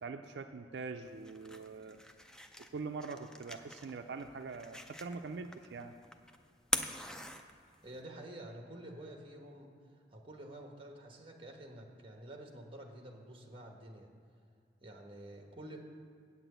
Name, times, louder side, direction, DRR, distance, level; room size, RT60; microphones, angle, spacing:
voice 1, 0.0-2.0 2.7-5.9, right 4 dB, 70° right, 6 dB, 0.4 m, -43 dB
sound 1, 1.0-8.0, left 1 dB, 5° left, 0.4 m, -43 dB
voice 2, 7.8-14.1 14.8-15.8, right 1 dB, 30° right, 2 dB, 1.1 m, -49 dB
8.4 x 6.0 x 8.0 m, 2.4 s
head